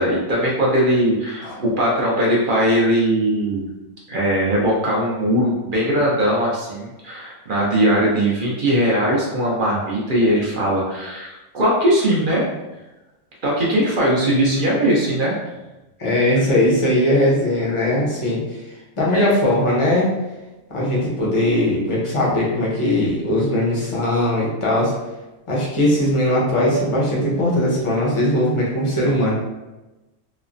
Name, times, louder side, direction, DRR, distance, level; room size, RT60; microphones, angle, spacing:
voice 1, 0.0-3.7 4.1-12.5 13.4-15.4, right 1 dB, 55° right, -4 dB, 0.6 m, -20 dB
voice 2, 14.0-14.8 16.0-18.6 19.0-20.1 20.7-24.9 25.5-29.3, left 1 dB, 35° left, -5 dB, 0.6 m, -19 dB
3.1 x 2.0 x 2.5 m, 1.0 s
omnidirectional pair, 1.3 m